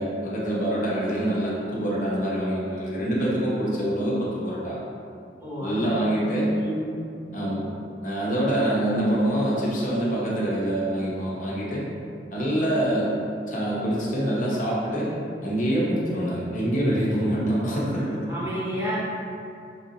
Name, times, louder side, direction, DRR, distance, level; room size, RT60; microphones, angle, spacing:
voice 1, 0.0-4.8 5.6-6.5 7.3-7.6 8.0-11.9 12.3-13.1 13.5-15.1 15.4-18.4, right 1 dB, 50° left, -6 dB, 0.8 m, -25 dB
voice 2, 5.4-5.9 6.5-6.9 18.3-19.0, equal, 15° right, -8 dB, 0.9 m, -30 dB
5.4 x 2.6 x 2.8 m, 2.5 s
head